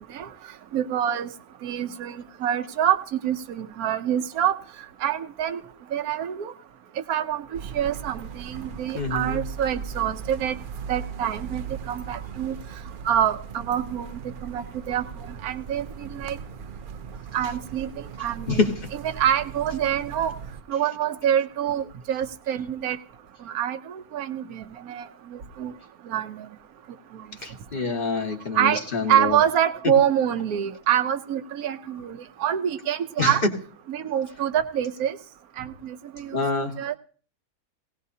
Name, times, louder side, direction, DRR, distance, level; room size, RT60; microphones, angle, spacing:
voice 1, 0.7-1.3 1.6-3.0 3.2-4.5 5.0-5.6 5.9-6.5 7.1-10.6 10.9-12.5 13.0-14.1 14.4-16.4 17.3-18.7 19.0-20.3 20.7-23.0 23.5-25.7 26.1-26.5 27.1-27.2 28.5-28.8 29.1-33.4 33.9-35.2 35.6-37.0, right 10 dB, 80° right, 7 dB, 1.3 m, -26 dB
sound 1, 7.5-20.6, right 6 dB, 50° right, 0.7 m, -38 dB
voice 2, 8.9-9.4 18.5-18.8 27.4-29.4 33.2-33.4 36.3-36.7, left 3 dB, 35° left, 4 dB, 2.0 m, -26 dB
18.0 x 18.0 x 2.8 m, 0.43 s
omnidirectional pair, 1.5 m